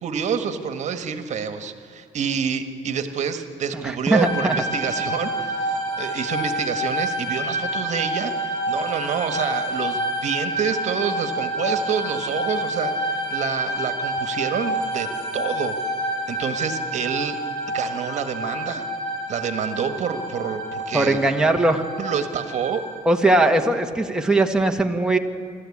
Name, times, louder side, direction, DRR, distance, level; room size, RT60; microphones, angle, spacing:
voice 1, 0.0-15.1 15.3-15.8 16.3-17.4 17.7-18.9 19.3-21.3 22.0-22.8, right 7 dB, 55° right, 8 dB, 1.5 m, -28 dB
voice 2, 3.7-4.6 20.9-21.8 23.0-25.2, right 2 dB, 5° right, 2 dB, 1.6 m, -20 dB
sound 1, 4.1-23.0, right 1 dB, 35° left, 7.5 m, -28 dB
26.0 x 13.0 x 8.6 m, 2.2 s
cardioid pair, 90°, 14 cm